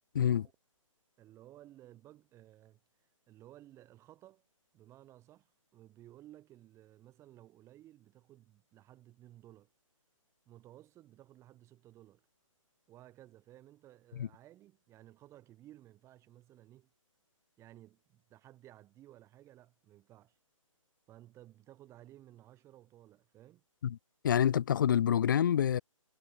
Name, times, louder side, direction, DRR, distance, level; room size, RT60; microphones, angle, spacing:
voice 1, 0.1-0.5 1.2-2.8 3.3-4.4 4.7-9.7 10.5-12.3 12.9-16.9 17.6-20.4 21.1-23.6, right 14 dB, 15° right, 3.7 m, -57 dB
voice 2, 24.2-25.8, left 9 dB, 35° left, 0.4 m, -27 dB
figure-of-eight pair, 140°, 17 cm